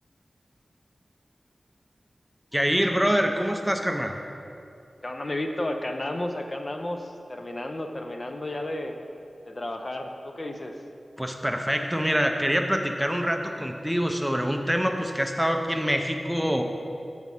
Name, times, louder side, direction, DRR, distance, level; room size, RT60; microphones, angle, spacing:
voice 1, 2.5-4.1 11.2-16.6, equal, 5° right, 4 dB, 0.6 m, -25 dB
voice 2, 5.0-8.9 9.5-10.7, left 1 dB, 45° left, 4 dB, 0.7 m, -32 dB
8.6 x 4.7 x 5.5 m, 2.5 s
wide cardioid pair, 60°, 0 cm